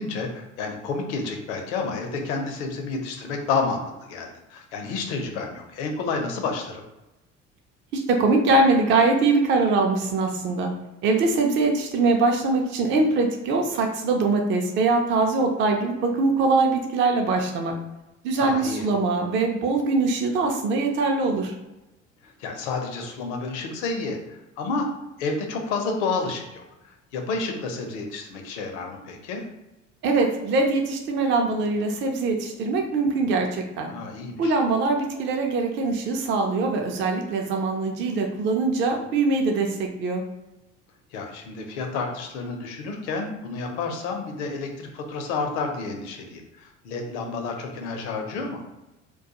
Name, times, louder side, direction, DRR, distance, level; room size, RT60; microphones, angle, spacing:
voice 1, 0.0-3.8 4.1-6.8 18.4-18.8 22.2-24.9 25.2-26.6 27.1-29.4 33.9-34.6 41.1-48.6, left 4 dB, 65° left, 3 dB, 0.6 m, -30 dB
voice 2, 7.9-10.7 11.0-17.7 18.2-21.5 30.0-33.9 34.4-40.2, right 3 dB, 30° right, 2 dB, 0.4 m, -22 dB
2.3 x 2.2 x 2.8 m, 0.99 s
figure-of-eight pair, 60°, 38 cm